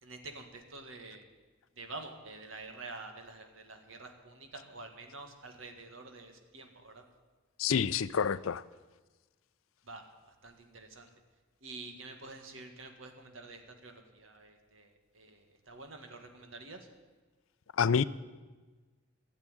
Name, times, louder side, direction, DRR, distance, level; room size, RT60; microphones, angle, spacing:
voice 1, 0.0-1.3 1.8-7.0 9.8-11.1 11.6-16.9, right 3 dB, 70° right, 5 dB, 1.8 m, -48 dB
voice 2, 7.6-8.6 17.8-18.0, left 6 dB, 75° left, 16 dB, 0.5 m, -28 dB
14.5 x 7.5 x 9.8 m, 1.3 s
head